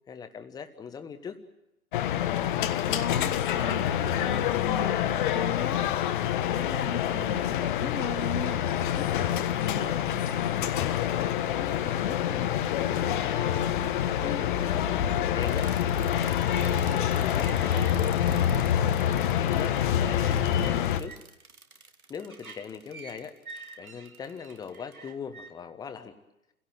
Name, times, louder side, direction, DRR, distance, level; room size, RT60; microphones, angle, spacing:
voice 1, 0.1-1.4 13.0-21.2 22.1-26.2, left 6 dB, 10° left, 9 dB, 1.3 m, -41 dB
sound 1, 1.9-21.0, left 10 dB, 35° left, 1.3 m, -26 dB
voice 2, 2.9-8.6 9.0-12.5, left 5 dB, 75° left, 10 dB, 1.4 m, -38 dB
sound 2, 15.4-25.5, right 4 dB, 75° right, 2.5 m, -47 dB
28.0 x 17.0 x 9.2 m, 0.90 s
figure-of-eight pair, 120°, 43 cm